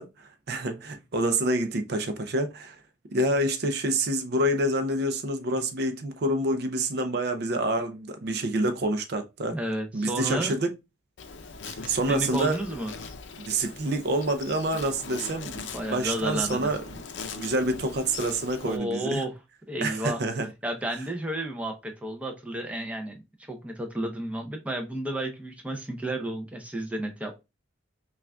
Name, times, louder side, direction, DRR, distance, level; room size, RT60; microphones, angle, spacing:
voice 1, 0.0-2.8 3.1-9.6 9.9-10.7 11.7-12.6 13.4-17.0 17.4-19.2 19.8-20.5, right 1 dB, 55° right, 0.5 m, -27 dB
voice 2, 9.5-10.5 11.8-12.9 15.7-16.7 18.6-19.3 19.7-20.2 20.6-23.2 23.5-27.4, right 1 dB, 5° right, 0.6 m, -32 dB
Insect, 11.2-18.8, left 5 dB, 70° left, 0.5 m, -41 dB
5.8 x 2.4 x 2.2 m
head